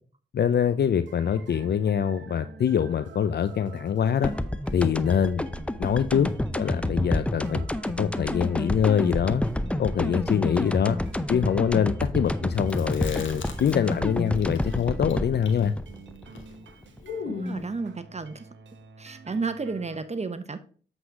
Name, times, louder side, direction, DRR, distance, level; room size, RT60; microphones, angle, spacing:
voice 1, 0.3-4.3 4.7-5.4 5.8-6.3 6.6-7.6 8.0-9.4 9.8-11.0 11.3-15.7, left 8 dB, 60° left, 11 dB, 0.5 m, -24 dB
sound 1, 1.0-20.0, right 5 dB, 75° right, 0.8 m, -48 dB
sound 2, 4.2-17.0, left 1 dB, 5° left, 0.5 m, -29 dB
Chewing mastication, 12.6-14.1 14.3-17.7, left 4 dB, 85° left, 1.1 m, -38 dB
voice 2, 17.2-18.5 19.0-20.6, right 4 dB, 35° right, 11 dB, 0.8 m, -32 dB
7.8 x 4.0 x 4.7 m, 0.42 s
supercardioid pair, 40°, 19 cm